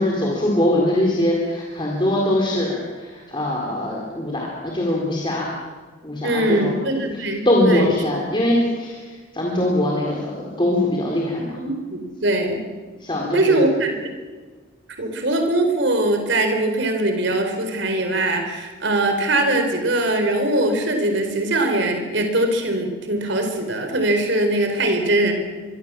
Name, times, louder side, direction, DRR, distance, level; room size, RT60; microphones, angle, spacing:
voice 1, 0.0-5.5 6.0-6.7 7.4-11.6 13.0-13.6, left 1 dB, 25° left, -2 dB, 4.3 m, -22 dB
voice 2, 6.2-7.9 11.6-12.6 13.3-14.0 15.0-25.3, right 1 dB, 60° right, 5 dB, 4.4 m, -21 dB
24.5 x 24.5 x 7.7 m, 1.4 s
head